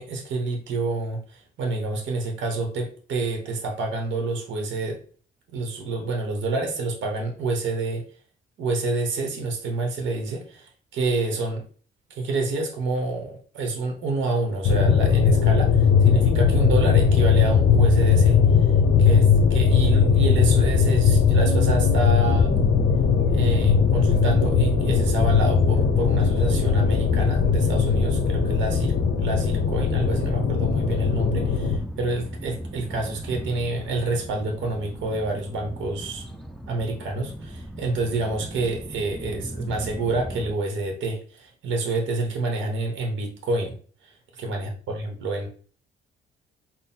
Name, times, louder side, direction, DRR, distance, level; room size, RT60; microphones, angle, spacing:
voice 1, 0.0-5.0 5.5-8.0 8.6-11.6 12.2-18.4 19.0-22.5 23.3-28.9 29.2-36.2 36.7-43.8 44.0-45.5, right 3 dB, 75° right, 2 dB, 1.1 m, -28 dB
sound 1, 14.6-31.8, left 6 dB, 60° left, 0.6 m, -19 dB
sound 2, 22.2-40.5, right 1 dB, ahead, 0.5 m, -34 dB
3.8 x 2.1 x 4.1 m, 0.41 s
cardioid pair, 90°, 20 cm